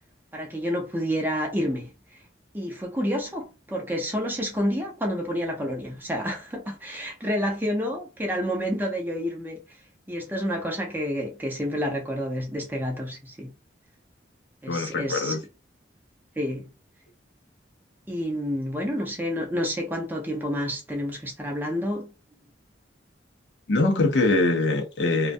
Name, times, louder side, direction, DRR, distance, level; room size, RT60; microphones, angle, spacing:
voice 1, 0.3-2.2 2.5-9.8 10.1-13.5 14.6-15.4 16.4-16.7 18.1-22.1, equal, 10° right, 0.5 m, -29 dB
voice 2, 14.7-15.4 23.7-25.3, left 2 dB, 70° left, 0.6 m, -23 dB
2.2 x 2.2 x 2.5 m
head